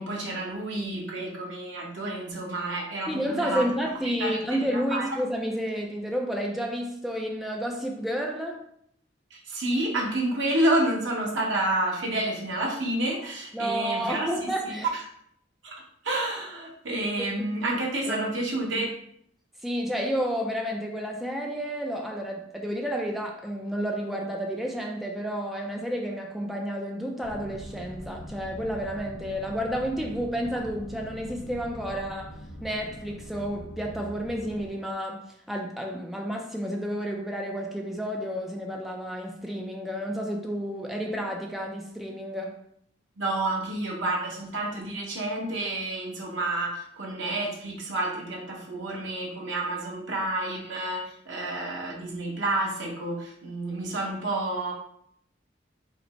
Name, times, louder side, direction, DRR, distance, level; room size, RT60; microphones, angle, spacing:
voice 1, 0.0-3.7 4.2-5.1 9.3-15.0 15.6-18.9 43.2-54.7, right 1 dB, 80° right, 1.1 m, -29 dB
voice 2, 3.1-8.6 13.5-14.9 17.2-17.3 18.1-18.3 19.6-32.3 32.6-42.6, equal, ahead, 0.3 m, -31 dB
sound 1, 27.2-34.7, equal, 60° left, 0.8 m, -42 dB
5.1 x 2.0 x 4.3 m
head